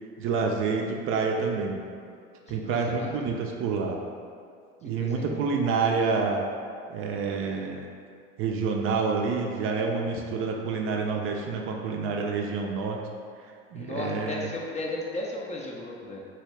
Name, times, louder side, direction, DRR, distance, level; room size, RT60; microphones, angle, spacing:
voice 1, 0.2-1.8 2.5-4.0 4.8-6.4 6.9-7.9 8.4-13.0 13.7-14.5, right 4 dB, 40° right, 1 dB, 0.4 m, -28 dB
voice 2, 2.5-3.6 5.0-5.5 13.7-16.2, left 2 dB, 20° left, -2 dB, 0.4 m, -35 dB
2.8 x 2.7 x 3.1 m, 2.2 s
hypercardioid pair, 75°, 32 cm